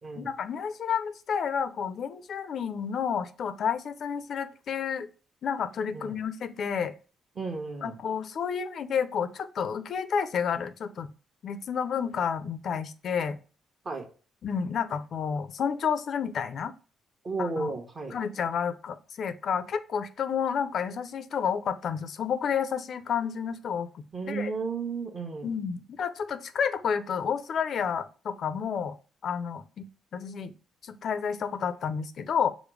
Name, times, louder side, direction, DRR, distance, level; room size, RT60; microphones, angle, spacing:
voice 1, 0.2-5.1 5.4-6.9 7.8-11.1 11.4-13.4 14.4-16.7 17.4-17.7 18.1-24.5 25.4-29.0 29.2-30.5 30.8-32.5, left 7 dB, 60° left, 12 dB, 0.5 m, -30 dB
voice 2, 7.4-7.9 13.8-14.1 17.2-18.1 24.1-25.5, right 4 dB, 40° right, 3 dB, 1.0 m, -33 dB
5.0 x 2.0 x 4.6 m, 0.37 s
cardioid pair, 90°, 0 cm